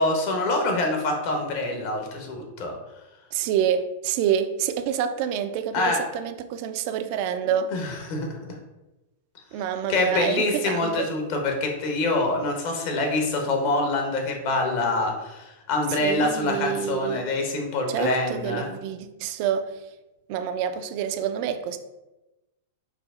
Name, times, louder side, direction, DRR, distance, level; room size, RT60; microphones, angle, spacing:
voice 1, 0.0-2.7 5.7-6.0 7.7-8.4 9.9-18.7, left 2 dB, 50° left, 1.0 m, -25 dB
voice 2, 3.3-7.7 9.5-11.1 15.9-17.2 17.9-19.8 20.3-21.8, right 9 dB, 50° right, 0.4 m, -27 dB
4.8 x 2.0 x 3.6 m
hypercardioid pair, 110°, 0 cm